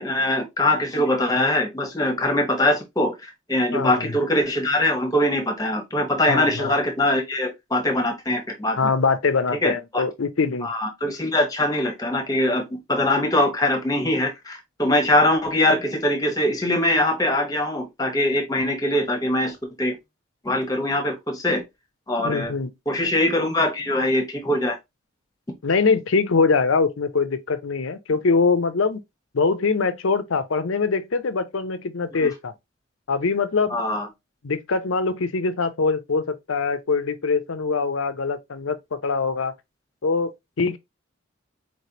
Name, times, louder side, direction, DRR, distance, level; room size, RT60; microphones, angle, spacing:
voice 1, 0.0-8.9 9.6-10.0 10.6-20.0 20.4-21.6 22.1-22.5 22.9-24.8 32.2-32.3 33.7-34.1, left 1 dB, 20° left, 1.1 m, -22 dB
voice 2, 3.7-4.1 6.3-6.7 8.8-10.7 22.2-22.7 25.6-29.0 29.3-32.5 33.1-33.8 34.4-39.5 40.0-40.8, left 4 dB, 90° left, 0.7 m, -23 dB
4.5 x 3.3 x 2.8 m
head